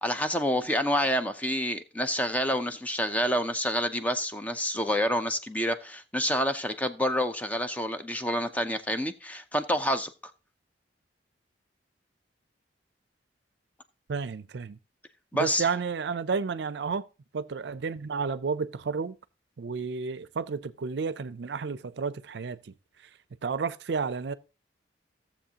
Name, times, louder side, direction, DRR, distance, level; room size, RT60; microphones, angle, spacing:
voice 1, 0.0-10.1 15.3-15.7, equal, 10° left, 0.5 m, -28 dB
voice 2, 14.1-14.8 15.3-17.1 17.3-19.2 19.6-22.7 23.4-24.3, right 5 dB, 65° right, 0.4 m, -31 dB
15.0 x 7.2 x 2.8 m
head